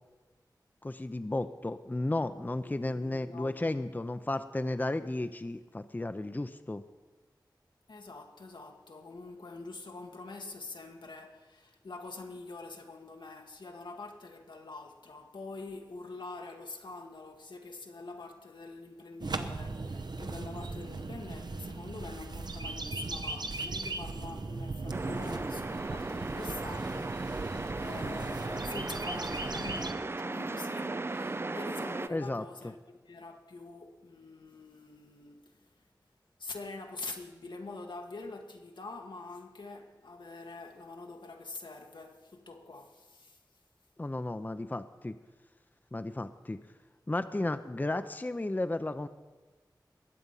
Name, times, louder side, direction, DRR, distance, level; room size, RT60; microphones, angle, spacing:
voice 1, 0.8-6.8 32.1-32.4 44.0-45.2 45.9-46.6 47.1-49.1, left 2 dB, 25° left, 0.6 m, -33 dB
voice 2, 2.6-3.6 7.9-35.6 36.4-43.4, left 3 dB, 85° left, 1.4 m, -45 dB
sound 1, 19.2-29.9, right 3 dB, 65° right, 0.8 m, -38 dB
sound 2, 24.9-32.1, right 2 dB, 30° right, 0.4 m, -36 dB
20.5 x 7.7 x 5.5 m
wide cardioid pair, 55°, 8 cm